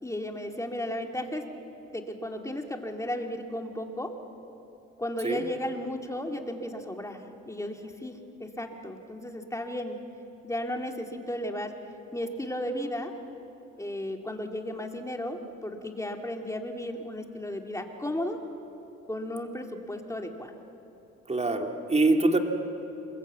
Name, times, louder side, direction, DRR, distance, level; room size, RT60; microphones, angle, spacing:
voice 1, 0.0-1.5 1.8-4.1 5.0-10.0 10.4-11.8 12.1-13.1 13.8-18.4 19.1-20.5, left 1 dB, 10° left, 3 dB, 2.4 m, -34 dB
voice 2, 21.3-22.4, right 2 dB, 20° right, 4 dB, 2.4 m, -24 dB
27.5 x 21.5 x 8.2 m, 3.0 s
cardioid pair, 90°, 30 cm